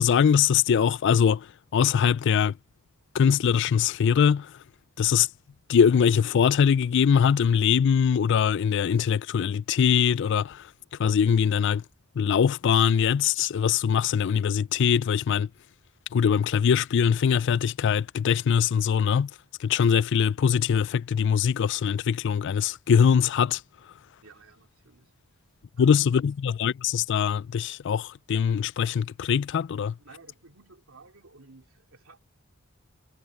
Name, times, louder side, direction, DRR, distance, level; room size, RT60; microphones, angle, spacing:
voice 1, 0.0-1.4 1.7-2.5 3.1-4.5 5.0-5.3 5.7-10.6 11.0-11.8 12.2-15.5 16.1-19.3 19.6-23.6 25.8-29.9, left 7 dB, 60° left, 0.3 m, -22 dB
voice 2, 24.2-25.1 25.8-26.2 30.0-32.2, right 3 dB, 80° right, 2.8 m, -53 dB
head